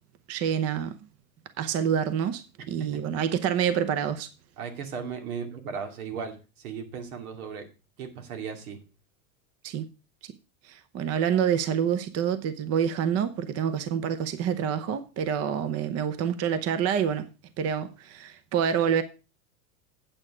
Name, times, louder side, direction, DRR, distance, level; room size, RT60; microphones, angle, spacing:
voice 1, 0.3-0.9 1.6-4.3 9.6-9.8 10.2-10.3 10.6-17.3 17.6-19.0, right 8 dB, 35° right, 0.9 m, -27 dB
voice 2, 4.6-7.7 8.0-8.8, right 6 dB, 85° right, 2.6 m, -36 dB
9.0 x 7.5 x 4.9 m
supercardioid pair, 130°, 43 cm